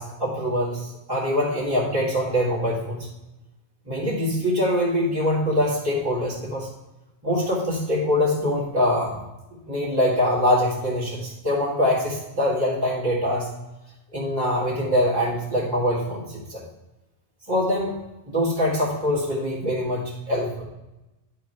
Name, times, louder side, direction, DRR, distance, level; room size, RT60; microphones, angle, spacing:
voice 1, 0.0-3.0 3.9-6.7 7.2-9.2 9.7-13.5 14.1-16.6 17.5-17.9 18.3-20.6, left 1 dB, 20° right, -7 dB, 2.2 m, -24 dB
10.0 x 5.0 x 4.6 m, 0.98 s
omnidirectional pair, 1.1 m